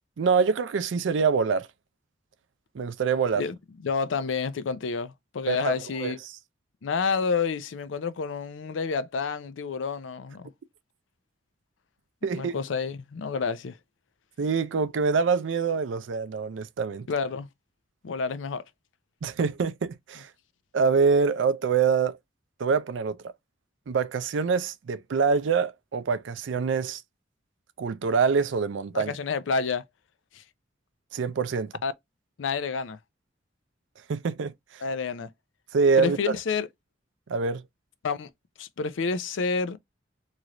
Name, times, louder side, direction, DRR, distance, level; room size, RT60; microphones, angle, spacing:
voice 1, 0.2-1.7 2.7-3.4 5.5-6.1 12.2-12.5 14.4-17.1 19.2-20.3 20.7-22.2 22.6-23.2 23.9-27.0 27.8-29.1 31.1-31.7 34.1-34.8 35.7-36.4 37.3-37.6, right 5 dB, 75° right, 0.4 m, -25 dB
voice 2, 3.8-6.2 6.8-10.5 12.3-13.8 17.1-17.5 18.0-18.6 28.9-29.8 30.3-30.4 31.8-31.9 32.4-33.0 34.8-35.3 36.0-36.7 38.0-38.3 38.6-39.8, left 5 dB, 80° left, 0.5 m, -29 dB
3.2 x 2.5 x 2.9 m
head